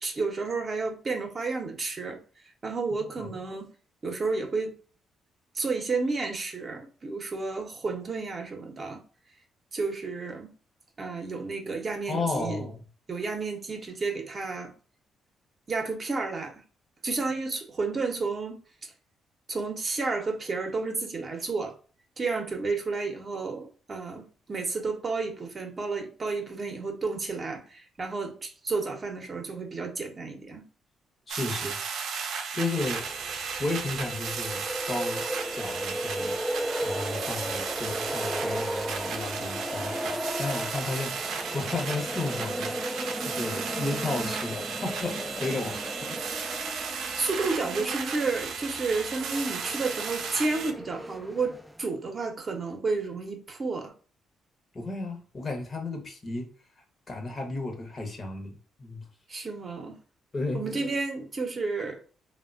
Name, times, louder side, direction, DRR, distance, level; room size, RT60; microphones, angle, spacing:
voice 1, 0.0-2.2 2.6-3.7 4.0-4.7 5.5-9.0 9.7-10.5 11.0-12.7 13.1-14.7 15.7-16.6 17.0-18.6 19.5-21.7 22.2-30.6 47.2-53.9 59.3-60.0 60.5-62.0, right 3 dB, 40° right, 0.7 m, -31 dB
voice 2, 12.1-12.8 31.3-31.8 32.5-33.1 33.6-35.2 35.5-36.3 36.8-42.7 43.2-46.2 54.7-56.5 57.1-59.0 60.3-60.6, left 3 dB, 35° left, 0.8 m, -33 dB
sound 1, 31.3-50.7, right 6 dB, 80° right, 0.5 m, -35 dB
sound 2, 32.7-51.8, equal, ahead, 0.3 m, -36 dB
3.1 x 2.1 x 2.4 m
cardioid pair, 90°, 0 cm